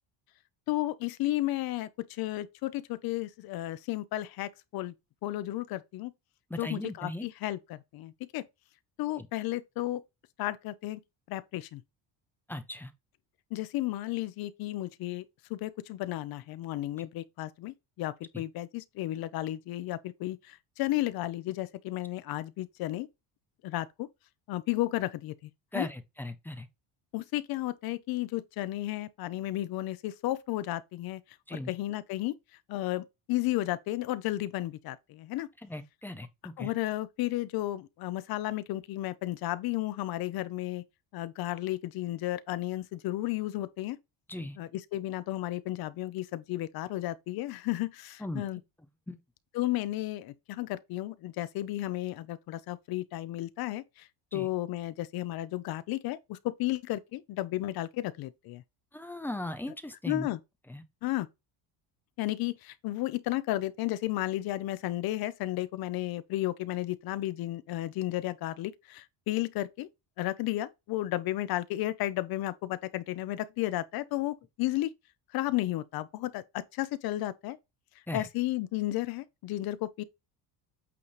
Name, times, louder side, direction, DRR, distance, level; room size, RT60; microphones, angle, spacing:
voice 1, 0.7-4.9 5.2-6.1 6.6-8.4 9.0-10.0 10.4-11.0 11.3-11.8 13.5-15.2 15.5-23.1 23.6-24.1 24.5-25.9 27.1-31.2 31.5-32.3 32.7-35.5 36.6-40.8 41.1-44.0 44.6-48.6 49.5-53.8 54.3-58.6 60.1-60.4 61.0-61.3 62.2-69.9 70.2-74.9 75.3-77.6 78.1-80.0, left 16 dB, 50° left, 0.8 m, -33 dB
voice 2, 6.5-7.3 9.2-9.3 12.5-12.9 18.3-18.4 25.7-26.7 31.5-31.7 35.6-36.7 44.3-44.6 48.2-48.5 49.1-49.2 54.3-54.5 58.9-60.3 60.7-60.8 78.1-78.3, left 1 dB, 5° left, 0.4 m, -38 dB
8.5 x 3.9 x 3.2 m
cardioid pair, 180°, 45 cm